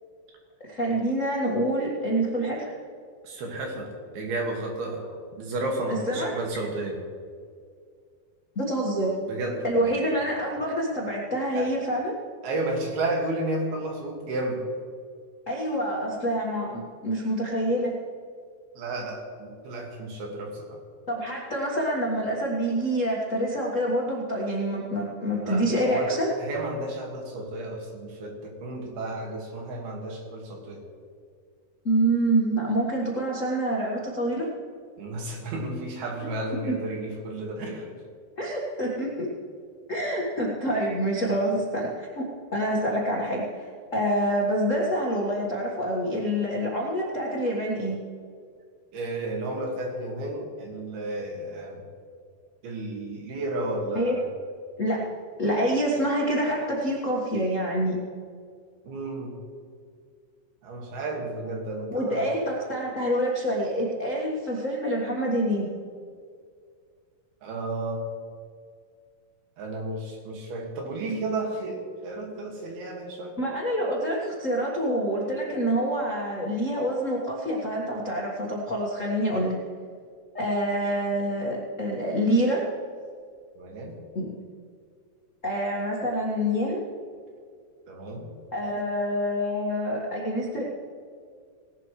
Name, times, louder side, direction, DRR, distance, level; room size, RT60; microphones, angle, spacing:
voice 1, 0.7-2.7 6.1-6.3 8.5-9.1 9.6-12.1 15.5-17.9 21.1-26.3 31.8-34.5 36.7-36.8 38.4-39.3 39.9-48.0 53.9-54.2 54.8-55.0 55.4-58.0 61.9-65.7 73.4-79.6 80.3-82.6 84.1-84.3 85.4-86.8 88.5-90.6, right 1 dB, 55° left, -4 dB, 0.8 m, -26 dB
voice 2, 3.2-5.1 5.4-7.0 9.2-9.9 11.5-11.9 12.4-14.6 18.8-20.8 25.4-30.8 35.0-37.9 48.9-51.8 52.6-54.2 58.8-59.4 60.6-62.3 67.4-68.0 69.6-73.4 83.6-84.0 87.9-88.3, right 2 dB, 85° right, 0 dB, 4.0 m, -32 dB
18.5 x 12.0 x 3.2 m, 2.2 s
omnidirectional pair, 4.3 m